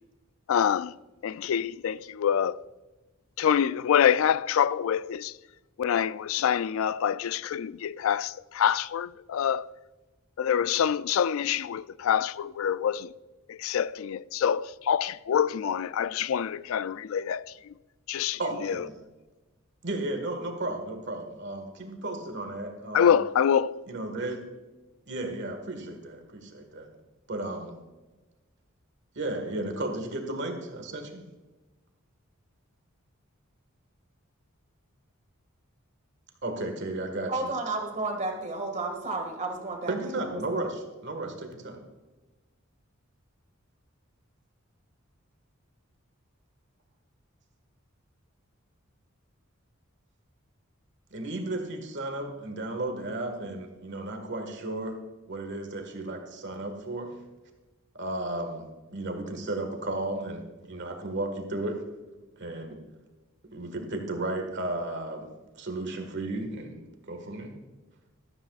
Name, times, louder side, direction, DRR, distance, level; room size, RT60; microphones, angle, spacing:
voice 1, 0.5-0.9 1.2-2.6 3.4-5.3 5.8-9.7 10.4-13.1 13.6-17.4 18.1-18.4 22.9-23.8, left 8 dB, 70° left, 0.3 m, -26 dB
voice 2, 18.4-18.9 19.8-23.2 23.9-24.4 25.1-26.9 27.3-27.8 29.1-31.2 36.4-37.3 39.9-41.8 51.1-55.0 55.3-57.1 57.9-61.8 62.4-62.8 63.4-65.3 65.5-66.8 67.1-67.5, right 2 dB, 55° right, 1.7 m, -34 dB
voice 3, 37.3-40.4, right 3 dB, 35° right, 1.9 m, -32 dB
14.0 x 13.0 x 2.4 m
head